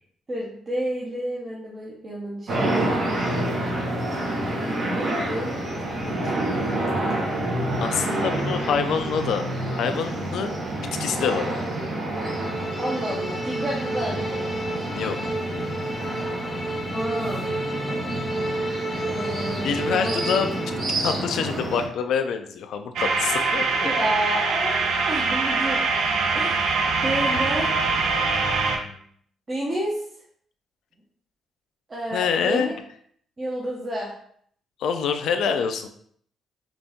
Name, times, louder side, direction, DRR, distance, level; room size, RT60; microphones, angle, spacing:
voice 1, 0.3-3.1 4.9-6.7 12.8-14.5 16.9-17.5 19.0-20.2 23.8-25.8 26.3-27.7 28.8-29.0 29.5-30.0 31.9-32.8 33.4-34.1, right 1 dB, 30° right, -5 dB, 0.9 m, -30 dB
sound 1, 2.5-21.9, right 1 dB, 50° right, 1.2 m, -28 dB
voice 2, 7.8-9.4 9.7-10.7 11.0-11.7 14.9-15.7 19.6-20.5 20.8-23.9 32.1-32.8 34.8-35.9, left 6 dB, 75° left, 7 dB, 0.4 m, -26 dB
sound 2, 12.1-21.0, right 1 dB, 20° left, 0.6 m, -31 dB
sound 3, 23.0-28.8, right 4 dB, 75° right, 0.6 m, -23 dB
4.0 x 2.6 x 3.5 m, 0.63 s
cardioid pair, 90°, 0 cm